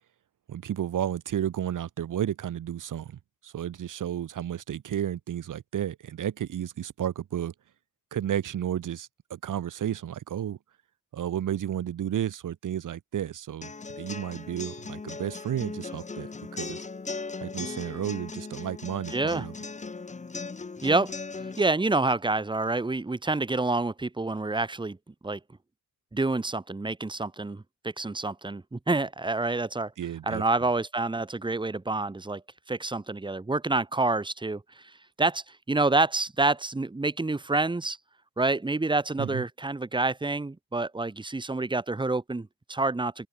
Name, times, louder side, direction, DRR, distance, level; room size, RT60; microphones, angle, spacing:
voice 1, 0.5-7.5 8.1-10.6 11.1-16.8 17.4-19.5 30.0-30.4 39.2-39.4, right 10 dB, 75° right, 4.7 m, -32 dB
sound 1, 13.6-21.6, left 4 dB, 20° left, 2.7 m, -38 dB
voice 2, 19.1-19.5 20.8-25.0 25.2-25.4 26.1-29.9 30.3-32.4 32.7-34.8 35.2-38.0 38.4-43.3, right 3 dB, 15° right, 5.8 m, -28 dB
wide cardioid pair, 175°, 31 cm